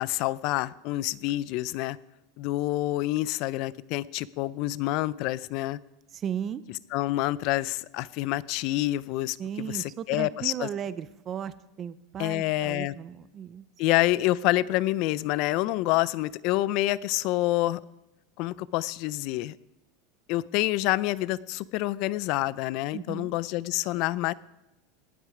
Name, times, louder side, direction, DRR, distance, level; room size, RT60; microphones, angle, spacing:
voice 1, 0.0-2.0 2.4-5.8 6.9-10.7 12.2-12.9 13.8-17.8 18.4-19.6 20.3-24.3, left 17 dB, 45° left, 20 dB, 0.4 m, -27 dB
voice 2, 6.1-6.6 9.4-13.7 22.9-23.3, right 9 dB, 25° right, 15 dB, 0.4 m, -35 dB
18.5 x 8.3 x 4.9 m, 0.94 s
supercardioid pair, 160°, 0 cm